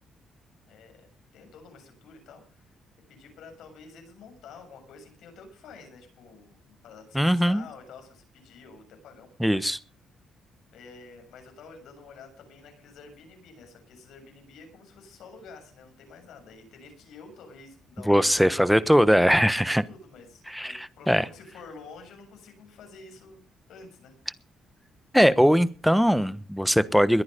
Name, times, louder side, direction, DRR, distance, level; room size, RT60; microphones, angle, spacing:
voice 1, 0.7-1.1 1.3-2.8 3.1-9.7 10.7-18.5 19.6-23.4 23.7-24.2, left 4 dB, 80° left, 6.8 m, -49 dB
voice 2, 7.1-7.7 9.4-9.8 18.1-19.8 20.5-21.2 25.1-27.2, equal, ahead, 1.1 m, -21 dB
21.5 x 9.6 x 5.2 m
cardioid pair, 90°, 0 cm